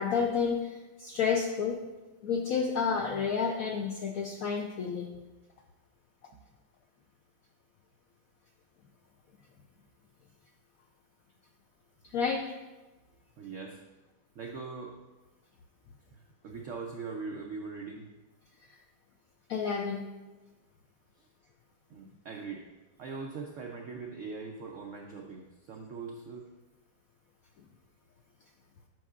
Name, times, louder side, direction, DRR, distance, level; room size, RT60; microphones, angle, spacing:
voice 1, 0.0-1.8 2.2-5.1 12.1-12.4 19.5-20.0, left 6 dB, 80° left, 2 dB, 0.7 m, -30 dB
voice 2, 13.4-13.8 14.3-14.9 16.1-18.1 21.2-21.3 21.9-22.7 23.0-26.5, right 4 dB, 85° right, 1 dB, 0.6 m, -41 dB
9.0 x 5.5 x 2.4 m, 1.2 s
omnidirectional pair, 2.0 m